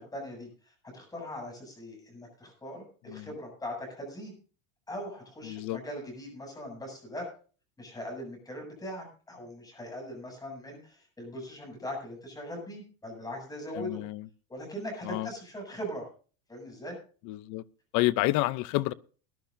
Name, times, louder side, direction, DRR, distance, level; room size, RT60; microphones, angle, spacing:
voice 1, 0.0-4.3 4.9-7.3 7.8-14.0 14.5-16.1 16.5-17.0, equal, 10° left, 1 dB, 7.7 m, -40 dB
voice 2, 5.5-5.8 13.7-14.3 15.0-15.3 17.3-17.6 17.9-18.9, left 18 dB, 45° left, 17 dB, 0.7 m, -29 dB
20.5 x 12.0 x 2.7 m, 0.38 s
supercardioid pair, 160°, 41 cm